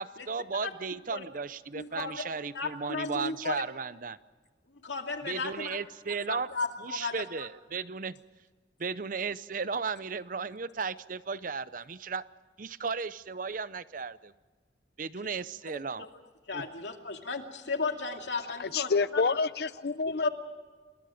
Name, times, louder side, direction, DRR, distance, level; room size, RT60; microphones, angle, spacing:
voice 1, 0.0-4.2 5.2-6.5 6.8-8.2 8.8-12.2 12.6-14.3 15.0-16.1 16.5-16.7, right 5 dB, 50° right, 0.7 m, -35 dB
voice 2, 1.7-2.1 2.5-3.6 4.8-5.8 6.3-7.2 15.7-15.8 16.5-19.2 20.1-20.3, left 4 dB, 80° left, 2.5 m, -34 dB
voice 3, 18.6-20.3, left 4 dB, 60° left, 0.6 m, -28 dB
28.0 x 21.0 x 5.1 m
head